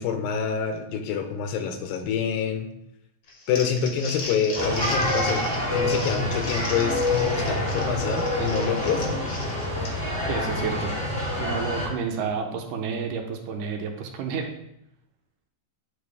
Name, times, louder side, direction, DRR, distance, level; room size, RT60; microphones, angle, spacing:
voice 1, 0.0-2.7 3.5-9.2, left 6 dB, 85° left, 6 dB, 2.5 m, -27 dB
Crumpling crinkling, 3.3-10.2, left 3 dB, 60° left, 1.3 m, -37 dB
sound 1, 4.5-11.9, left 1 dB, 5° left, 1.2 m, -27 dB
voice 2, 10.3-10.9 11.3-14.5, right 6 dB, 75° right, 3 dB, 2.2 m, -30 dB
9.9 x 4.0 x 3.4 m, 0.79 s
omnidirectional pair, 4.0 m